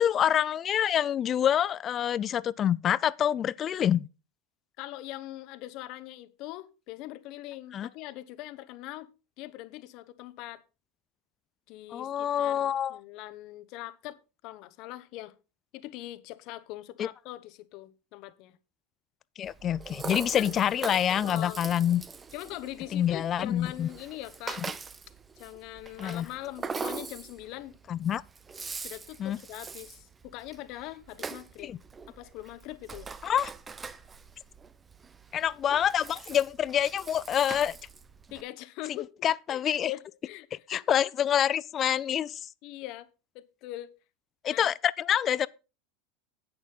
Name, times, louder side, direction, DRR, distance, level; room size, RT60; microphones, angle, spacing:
voice 1, 0.0-4.1 7.7-7.9 11.9-13.0 17.0-17.1 19.4-22.0 22.9-23.9 26.0-26.3 27.9-28.2 29.2-29.4 31.6-31.8 33.2-33.5 35.3-37.8 39.2-39.9 40.7-42.4 44.4-45.5, left 10 dB, 35° left, 0.4 m, -26 dB
voice 2, 4.8-9.1 9.4-10.6 11.7-14.2 14.4-15.3 15.7-18.6 20.3-20.5 21.2-21.6 22.3-24.6 25.4-27.8 28.8-31.7 32.1-33.1 38.3-39.1 39.5-40.8 42.6-43.1 43.3-43.9 44.5-44.7, left 16 dB, 55° left, 1.1 m, -42 dB
Rattle (instrument), 19.4-38.4, right 5 dB, 20° right, 0.9 m, -42 dB
10.5 x 8.7 x 4.0 m
hypercardioid pair, 90°, 0 cm